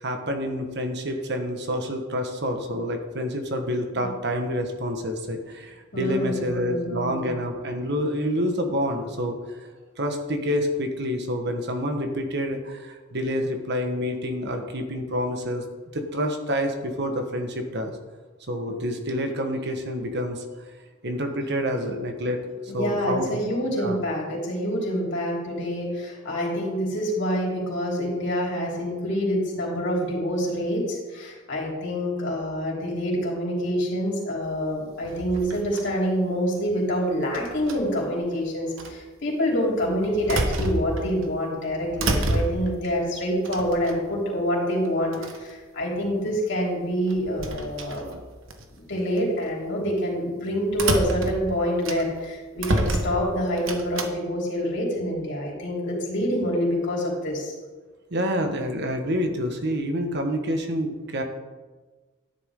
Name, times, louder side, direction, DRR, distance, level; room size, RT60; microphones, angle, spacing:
voice 1, 0.0-9.6 10.0-15.6 15.9-17.9 18.5-20.4 21.0-23.3 23.7-24.0 58.1-61.2, equal, 55° right, 4 dB, 1.5 m, -28 dB
voice 2, 5.9-7.3 22.7-48.1 48.7-57.5, equal, 60° left, -3 dB, 3.8 m, -26 dB
sound 1, 35.0-36.0 37.3-38.0 38.8-38.9 39.8-41.3 41.6-42.8 43.4-44.2 44.8-44.9 45.1-45.5 47.1-48.6 49.2-49.4 50.7-52.3 52.6-54.1, right 2 dB, 80° right, 1.2 m, -29 dB
13.0 x 10.5 x 3.8 m, 1.3 s
head